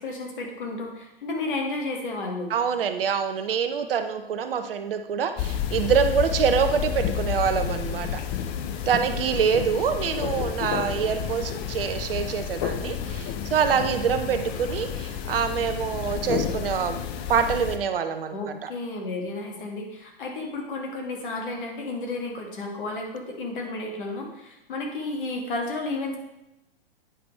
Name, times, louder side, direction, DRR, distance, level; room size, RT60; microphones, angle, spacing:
voice 1, 0.0-2.5 18.3-26.2, left 2 dB, 55° left, 1 dB, 1.9 m, -32 dB
voice 2, 2.5-8.2 8.9-17.0 17.3-18.7, right 7 dB, 65° right, 9 dB, 0.8 m, -25 dB
sound 1, 5.4-17.8, left 9 dB, 20° left, 0.3 m, -30 dB
9.1 x 5.9 x 3.3 m, 0.88 s
figure-of-eight pair, 115°, 30 cm